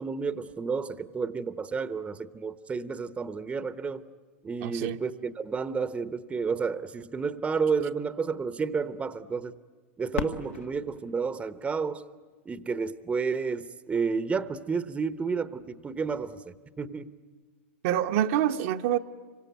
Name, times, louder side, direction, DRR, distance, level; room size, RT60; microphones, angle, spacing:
voice 1, 0.0-4.0 4.4-9.5 10.0-12.0 12.4-17.1, right 5 dB, 15° right, 0.9 m, -31 dB
voice 2, 4.6-5.0 17.8-19.0, right 11 dB, 60° right, 1.0 m, -26 dB
Fireworks, 10.1-12.9 13.6-13.7 14.4-14.8 16.7-16.8, left 8 dB, 75° left, 1.6 m, -39 dB
26.0 x 24.5 x 9.3 m
hypercardioid pair, 105°, 7 cm